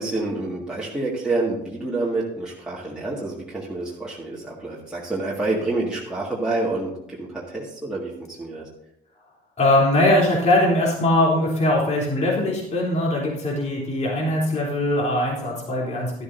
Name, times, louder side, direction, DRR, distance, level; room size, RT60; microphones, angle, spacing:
voice 1, 0.0-8.7, right 2 dB, 5° right, -7 dB, 2.0 m, -28 dB
voice 2, 9.6-16.1, left 1 dB, 40° left, -3 dB, 3.5 m, -21 dB
12.0 x 12.0 x 2.7 m, 0.80 s
cardioid pair, 110°, 17 cm